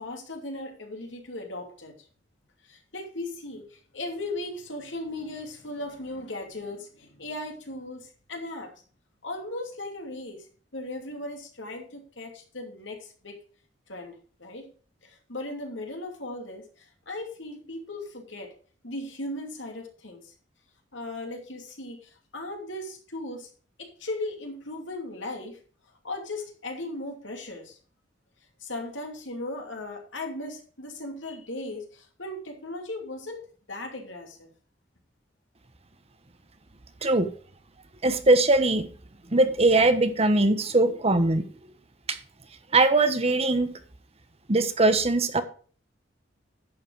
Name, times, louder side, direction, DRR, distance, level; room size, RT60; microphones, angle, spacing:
voice 1, 0.0-1.9 2.7-8.7 9.2-10.4 10.7-13.4 13.9-14.7 15.0-16.6 17.1-18.5 18.8-20.3 20.9-23.5 23.8-25.6 26.0-27.8 28.6-34.5, left 2 dB, 80° left, 3 dB, 2.8 m, -37 dB
voice 2, 38.0-38.9 39.3-41.4 42.1-42.2 42.7-43.7 44.5-45.4, right 2 dB, 35° right, 9 dB, 1.2 m, -21 dB
11.0 x 7.5 x 4.7 m, 0.41 s
head